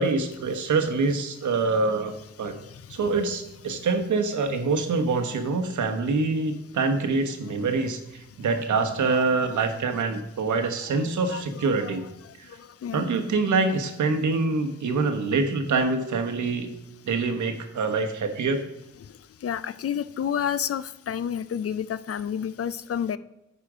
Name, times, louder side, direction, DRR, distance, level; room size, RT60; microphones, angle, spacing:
voice 1, 0.0-2.5 2.9-12.1 12.4-12.5 12.9-16.7 17.0-18.6, right 4 dB, 90° right, 6 dB, 1.1 m, -25 dB
voice 2, 11.3-11.9 12.8-13.0 19.4-23.2, left 8 dB, 55° left, 16 dB, 0.4 m, -30 dB
9.7 x 5.0 x 4.9 m, 0.92 s
wide cardioid pair, 95°, 29 cm